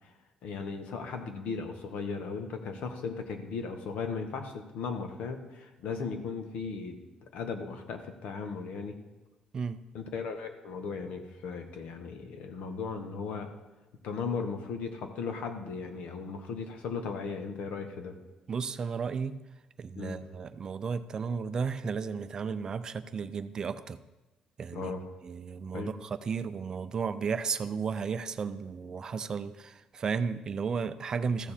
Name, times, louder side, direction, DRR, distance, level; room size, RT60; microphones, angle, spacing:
voice 1, 0.4-7.0 7.3-9.0 9.9-13.5 14.0-18.1 19.9-20.2 24.7-25.0 25.7-25.9, left 5 dB, 80° left, 6 dB, 1.3 m, -36 dB
voice 2, 18.5-19.4 19.8-24.0 24.6-24.9 25.2-31.5, right 5 dB, 35° right, 12 dB, 0.4 m, -34 dB
14.5 x 7.0 x 4.3 m, 1.1 s
cardioid pair, 155°, 2 cm